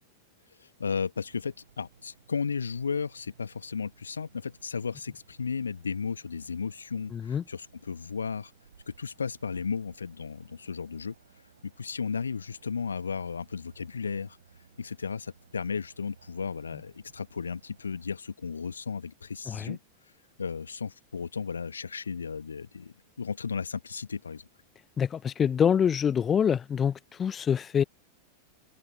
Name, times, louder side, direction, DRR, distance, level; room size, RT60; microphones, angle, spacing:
voice 1, 0.6-8.5 8.9-11.1 11.6-14.4 14.8-19.8 20.4-24.5, left 5 dB, 75° left, 1.5 m, -34 dB
sound 1, 1.2-18.1, right 6 dB, 70° right, 6.5 m, -60 dB
voice 2, 7.1-7.4 19.5-19.8 25.0-27.8, left 8 dB, 20° left, 0.9 m, -26 dB
figure-of-eight pair, 90°, 0 cm